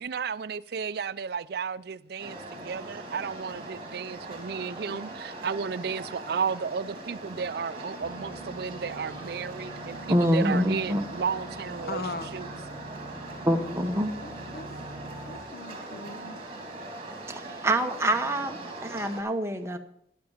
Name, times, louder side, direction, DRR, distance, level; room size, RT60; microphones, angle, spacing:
voice 1, 0.0-12.0 12.3-12.5, right 6 dB, 60° right, 0.5 m, -33 dB
sound 1, 2.2-19.2, right 2 dB, 35° right, 2.9 m, -41 dB
sound 2, 8.0-15.4, right 2 dB, 35° left, 2.4 m, -44 dB
voice 2, 10.1-11.1 13.5-14.1 17.3-19.8, right 1 dB, 15° right, 1.0 m, -26 dB
voice 3, 11.9-12.4 14.2-14.7 15.3-16.4, left 3 dB, 55° left, 0.7 m, -39 dB
10.5 x 8.7 x 7.2 m
head